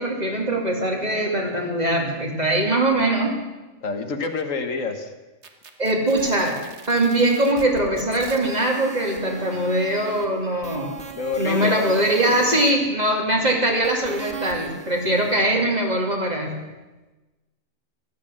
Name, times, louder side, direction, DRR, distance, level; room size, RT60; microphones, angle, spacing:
voice 1, 0.0-3.4 5.8-6.6 6.9-11.0 11.4-16.6, right 1 dB, 30° right, 0 dB, 2.7 m, -22 dB
voice 2, 3.8-5.1 11.1-11.9 12.3-12.7 15.2-15.3, left 4 dB, 80° left, 6 dB, 1.8 m, -28 dB
sound 1, 5.4-10.3 10.6-12.7 13.8-15.4, right 3 dB, 60° right, 1.6 m, -39 dB
15.0 x 12.0 x 7.6 m, 1.2 s
omnidirectional pair, 1.3 m